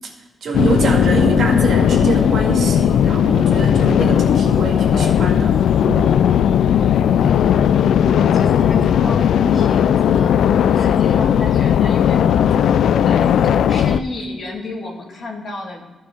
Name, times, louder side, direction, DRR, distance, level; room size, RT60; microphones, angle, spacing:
voice 1, 0.4-5.6 5.9-6.2, right 3 dB, 60° right, 0 dB, 2.0 m, -24 dB
sound 1, 0.5-14.0, left 9 dB, 85° left, 0.3 m, -16 dB
voice 2, 7.3-15.9, left 2 dB, 45° left, 0 dB, 1.9 m, -32 dB
14.0 x 4.6 x 5.0 m, 1.2 s
wide cardioid pair, 145°, 0 cm